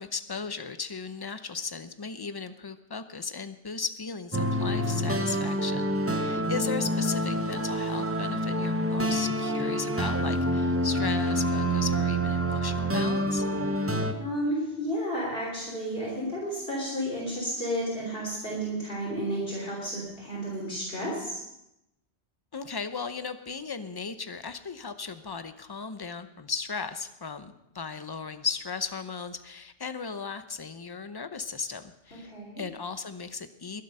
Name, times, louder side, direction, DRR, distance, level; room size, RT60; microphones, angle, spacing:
voice 1, 0.0-13.4 22.5-32.3 32.6-33.8, left 5 dB, 25° left, 10 dB, 0.6 m, -36 dB
sound 1, 4.3-14.1, equal, 15° right, 0.6 m, -27 dB
voice 2, 14.2-21.4 32.3-32.6, equal, 50° left, -4 dB, 3.5 m, -32 dB
22.0 x 7.7 x 5.5 m, 0.88 s
omnidirectional pair, 1.2 m